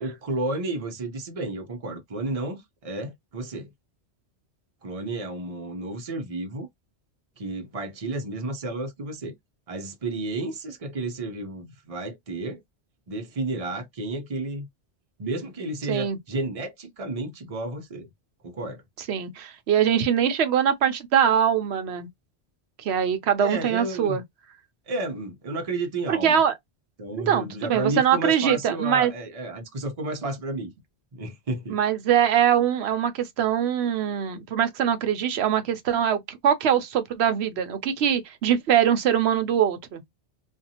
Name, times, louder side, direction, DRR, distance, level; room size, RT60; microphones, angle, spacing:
voice 1, 0.0-3.7 4.8-6.7 7.4-9.3 9.7-12.6 13.1-14.7 15.2-18.1 18.4-18.8 23.4-24.2 24.9-26.4 27.0-30.7 31.1-31.8, right 2 dB, 35° right, 0.7 m, -32 dB
voice 2, 19.1-22.1 22.8-24.2 26.1-26.5 27.1-29.1 31.7-40.0, right 9 dB, 75° right, 0.9 m, -23 dB
2.6 x 2.3 x 2.7 m
omnidirectional pair, 1.1 m